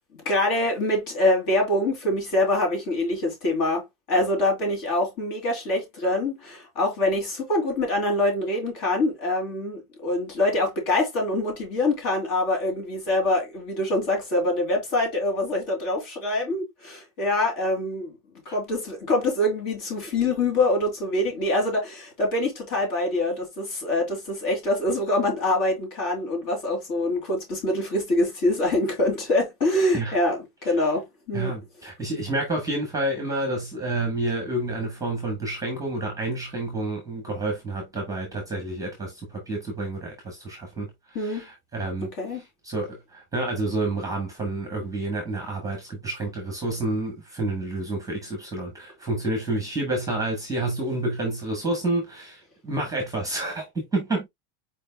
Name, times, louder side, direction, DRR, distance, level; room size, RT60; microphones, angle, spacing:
voice 1, 0.2-18.1 18.5-31.5 41.1-41.5 42.0-42.4, left 1 dB, 45° left, 2.8 m, -25 dB
voice 2, 31.3-42.1 42.6-54.3, right 2 dB, 5° right, 1.3 m, -29 dB
5.0 x 4.7 x 2.2 m
cardioid pair, 170°, 47 cm